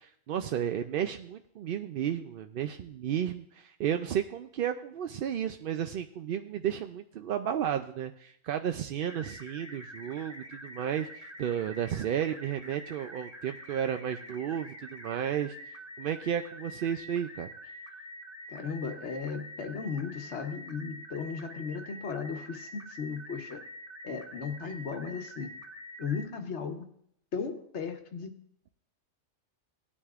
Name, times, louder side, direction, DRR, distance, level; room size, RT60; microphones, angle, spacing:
voice 1, 0.0-17.5, right 9 dB, 60° right, 7 dB, 0.6 m, -33 dB
sound 1, 9.0-26.3, equal, 15° right, 0.9 m, -46 dB
voice 2, 18.5-23.6 24.0-25.5 26.0-26.9 27.3-28.3, left 5 dB, 65° left, 6 dB, 1.3 m, -36 dB
17.5 x 9.8 x 2.4 m, 0.70 s
omnidirectional pair, 1.3 m